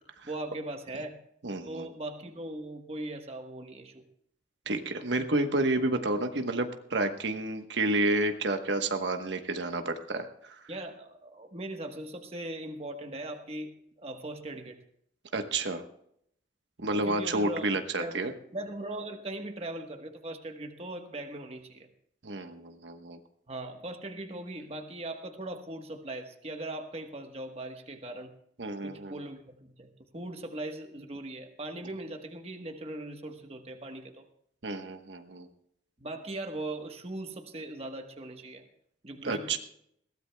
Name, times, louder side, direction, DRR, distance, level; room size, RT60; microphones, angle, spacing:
voice 1, 0.2-1.2 1.6-4.0 10.7-14.8 16.9-18.3 18.5-21.9 23.5-28.3 28.8-34.2 36.0-38.6 39.0-39.6, right 1 dB, 35° right, 5 dB, 1.3 m, -39 dB
voice 2, 1.4-1.9 4.7-10.6 15.3-15.8 16.8-18.3 22.2-23.2 28.6-29.1 34.6-35.5 39.2-39.6, right 2 dB, 90° right, 6 dB, 1.2 m, -30 dB
21.5 x 16.0 x 2.3 m, 0.71 s
head